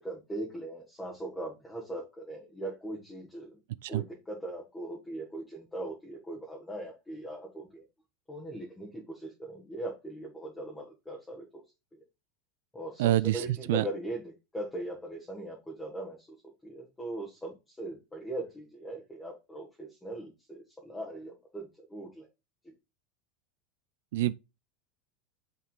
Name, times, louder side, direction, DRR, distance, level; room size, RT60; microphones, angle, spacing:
voice 1, 0.0-3.6 3.9-7.8 8.3-11.6 12.7-16.3 16.6-22.3, right 1 dB, 5° left, 1.4 m, -40 dB
voice 2, 13.0-13.8 24.1-24.3, right 14 dB, 75° right, 0.4 m, -27 dB
8.7 x 3.7 x 3.7 m
supercardioid pair, 165°, 0 cm